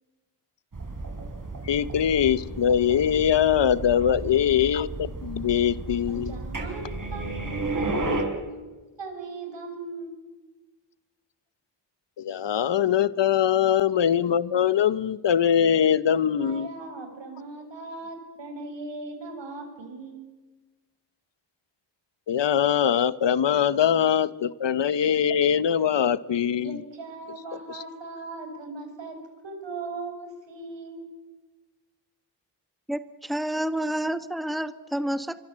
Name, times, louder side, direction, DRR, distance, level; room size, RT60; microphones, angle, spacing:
sound 1, 0.7-8.2, right 2 dB, 45° right, 6.4 m, -33 dB
voice 1, 1.6-6.4 12.2-16.7 22.3-26.8, left 9 dB, 75° left, 16 dB, 1.1 m, -22 dB
voice 2, 6.1-10.2 16.3-20.2 26.6-29.2 29.4-31.1, right 3 dB, 80° right, 5 dB, 6.5 m, -39 dB
voice 3, 32.9-35.4, right 1 dB, ahead, 12 dB, 1.4 m, -29 dB
25.0 x 25.0 x 7.6 m, 1.2 s
cardioid pair, 60°, 43 cm